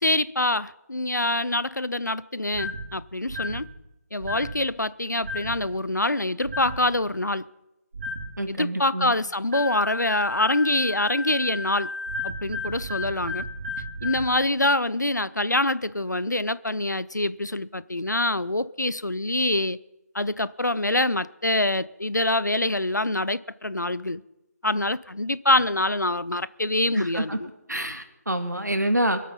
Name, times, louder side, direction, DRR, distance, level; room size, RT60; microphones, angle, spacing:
voice 1, 0.0-3.7 4.1-7.5 8.5-11.9 12.2-13.5 14.0-19.8 20.1-24.2 24.6-27.5, left 2 dB, 90° left, 0.6 m, -25 dB
sound 1, 2.5-2.9 3.3-3.6 4.2-4.6 5.2-5.6 6.4-6.8 7.9-8.3 9.5-14.3, left 2 dB, 45° right, 2.4 m, -33 dB
voice 2, 8.4-9.1 26.9-27.4 27.7-29.2, right 1 dB, 85° right, 2.0 m, -27 dB
23.0 x 8.6 x 5.5 m
figure-of-eight pair, 155°, 9 cm